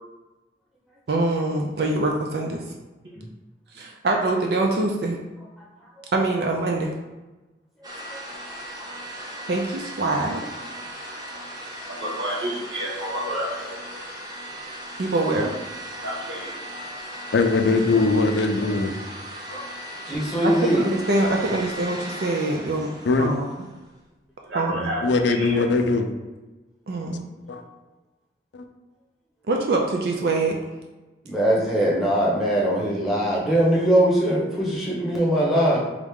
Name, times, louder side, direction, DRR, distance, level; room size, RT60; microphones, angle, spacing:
voice 1, 1.1-2.6 3.7-5.2 6.1-7.0 9.5-10.4 15.0-15.5 20.4-22.9 23.2-23.5 24.5-24.9 26.9-27.3 29.5-30.6, right 2 dB, 60° right, 1 dB, 0.4 m, -24 dB
sound 1, 7.8-23.9, equal, 20° right, 0.7 m, -37 dB
voice 2, 11.9-13.8 16.0-16.6 19.5-19.6 24.5-25.6, equal, 90° right, -4 dB, 1.4 m, -30 dB
voice 3, 17.3-18.9 23.0-23.3 25.0-26.1 27.5-27.6 28.5-28.6, left 3 dB, 80° left, 6 dB, 0.4 m, -21 dB
voice 4, 20.0-20.9 31.2-35.8, right 1 dB, ahead, -7 dB, 1.0 m, -21 dB
3.6 x 3.2 x 3.6 m, 1.1 s
head